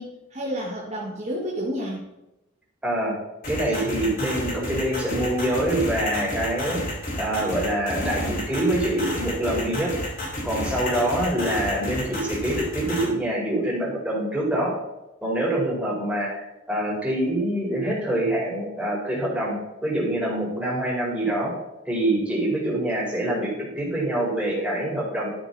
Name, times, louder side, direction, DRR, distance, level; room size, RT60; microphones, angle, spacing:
voice 1, 0.0-2.1, equal, 35° right, -4 dB, 1.8 m, -30 dB
voice 2, 2.8-3.1 3.5-6.8 7.2-9.9 10.4-14.8 15.2-19.5 19.8-21.5 21.8-25.3, right 1 dB, 5° right, -5 dB, 4.6 m, -25 dB
sound 1, 3.4-13.0, left 1 dB, 45° left, 4.9 m, -30 dB
13.0 x 9.0 x 4.2 m, 0.94 s
head